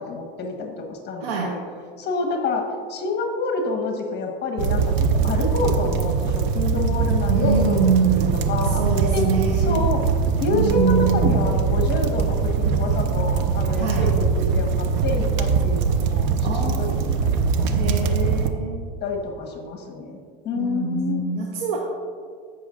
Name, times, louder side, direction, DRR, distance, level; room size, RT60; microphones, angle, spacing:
voice 1, 0.0-1.6 2.0-2.6 2.9-8.8 9.1-9.3 9.5-10.0 10.4-17.7 18.0-18.3 19.0-20.2 20.4-21.2, left 3 dB, 35° left, 2 dB, 1.3 m, -28 dB
voice 2, 1.2-1.6 7.3-8.3 8.8-9.8 10.5-11.4 13.8-14.1 16.4-17.1 17.7-18.9 20.5-21.8, right 5 dB, 80° right, 0 dB, 1.1 m, -24 dB
sound 1, 4.6-18.5, right 5 dB, 55° right, 0.8 m, -22 dB
15.5 x 6.2 x 2.5 m, 2.1 s
supercardioid pair, 115°, 29 cm